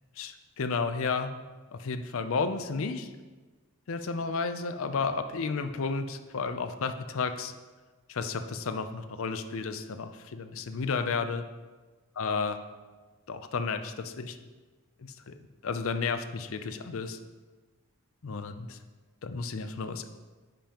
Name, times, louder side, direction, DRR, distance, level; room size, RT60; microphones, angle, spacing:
voice 1, 0.2-1.3 1.7-3.1 3.9-7.5 8.1-11.4 12.2-12.6 13.3-14.4 15.0-15.3 15.6-17.2 18.2-18.8 19.2-20.1, left 4 dB, 65° left, 9 dB, 0.5 m, -32 dB
10.0 x 5.3 x 2.9 m, 1.3 s
head